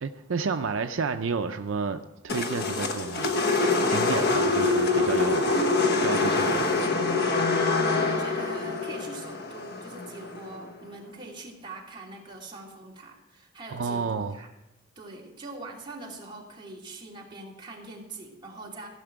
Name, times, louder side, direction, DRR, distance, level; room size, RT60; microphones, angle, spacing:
voice 1, 0.0-3.3 3.9-5.5 6.0-6.7 13.7-14.4, right 4 dB, 75° right, 7 dB, 0.5 m, -30 dB
sound 1, 2.3-10.6, left 3 dB, 55° left, 1.1 m, -25 dB
voice 2, 7.8-14.5 14.9-18.9, right 2 dB, 25° right, -3 dB, 2.9 m, -42 dB
16.0 x 5.9 x 9.0 m, 0.99 s
head